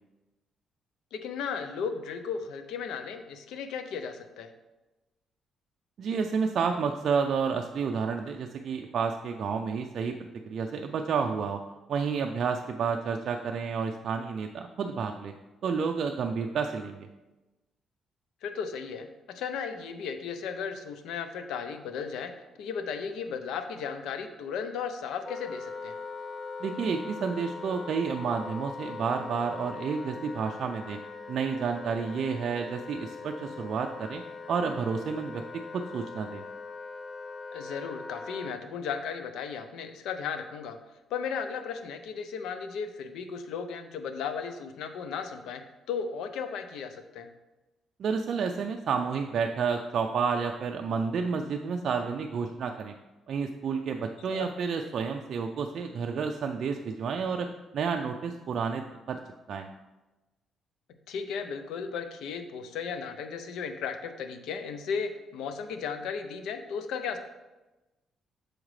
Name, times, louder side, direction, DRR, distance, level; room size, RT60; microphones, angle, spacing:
voice 1, 1.1-4.5 18.4-22.3 22.6-25.9 37.5-40.8 41.1-47.3 54.3-54.5 61.1-67.2, left 6 dB, 85° left, 8 dB, 0.5 m, -35 dB
voice 2, 6.0-11.6 11.9-15.3 15.6-17.1 26.6-31.0 31.3-34.2 34.5-35.4 35.7-36.4 48.0-52.9 53.3-57.5 57.7-59.2 59.5-59.7, right 5 dB, 60° right, 3 dB, 0.3 m, -30 dB
Wind instrument woodwind instrument, 25.2-38.6, left 4 dB, 45° left, 0.7 m, -41 dB
6.3 x 4.9 x 3.2 m, 1.1 s
cardioid pair, 90°, 0 cm